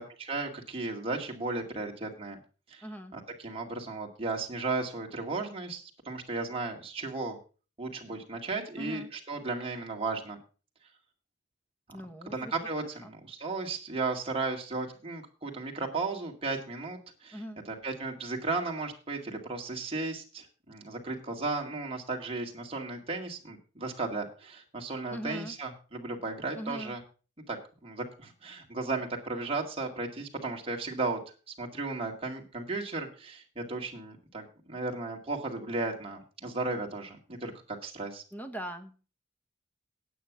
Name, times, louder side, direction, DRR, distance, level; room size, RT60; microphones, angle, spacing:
voice 1, 0.0-2.4 2.7-2.9 3.1-7.4 7.8-10.4 12.3-17.4 17.7-27.0 27.5-27.6 27.8-31.2 31.6-37.5 37.8-38.2, right 3 dB, 30° right, 1 dB, 2.2 m, -35 dB
voice 2, 2.8-3.2 8.8-9.1 11.9-12.5 13.0-13.1 17.3-17.6 25.1-25.6 26.5-27.0 38.3-39.1, equal, 10° left, 7 dB, 1.2 m, -40 dB
9.2 x 8.8 x 6.0 m, 0.36 s
head